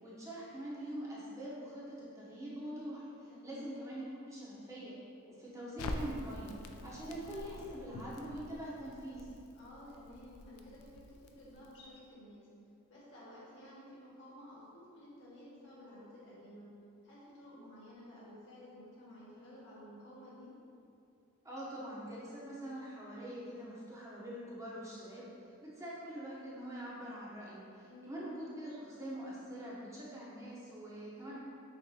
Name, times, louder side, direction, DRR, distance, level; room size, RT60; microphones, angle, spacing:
voice 1, 0.0-4.9 5.3-6.5 6.8-9.3 21.4-25.2 25.6-31.4, right 1 dB, 15° right, -7 dB, 0.6 m, -44 dB
voice 2, 3.3-3.7 9.5-12.5 12.9-16.7 17.0-20.5 27.8-28.2 31.2-31.4, left 1 dB, 60° left, -8 dB, 1.4 m, -53 dB
Crackle, 5.8-11.9, left 2 dB, 80° left, 0.3 m, -46 dB
6.6 x 2.4 x 2.7 m, 2.6 s
head